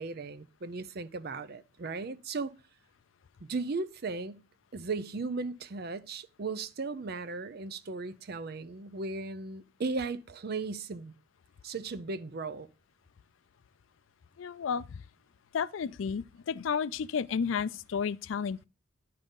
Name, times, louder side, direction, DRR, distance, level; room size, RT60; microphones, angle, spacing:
voice 1, 0.0-2.5 3.5-4.4 4.7-11.1 11.6-12.7, right 3 dB, 55° right, 0.5 m, -36 dB
voice 2, 14.4-14.9 15.5-18.7, left 6 dB, 85° left, 0.4 m, -32 dB
10.5 x 3.8 x 5.3 m
head